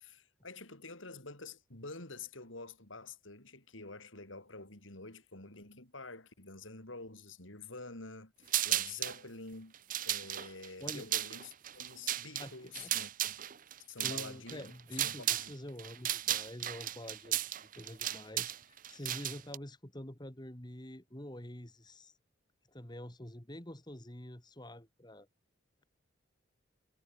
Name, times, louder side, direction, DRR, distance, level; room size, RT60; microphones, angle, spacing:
voice 1, 0.0-9.7 10.0-13.5 13.9-14.7 15.0-15.5, left 3 dB, 75° left, 6.0 m, -48 dB
sound 1, 8.5-9.2 9.7-15.5 15.8-19.6, right 12 dB, 40° right, 0.7 m, -35 dB
voice 2, 12.4-12.9 14.0-22.1 22.7-25.3, left 1 dB, 20° left, 2.4 m, -47 dB
head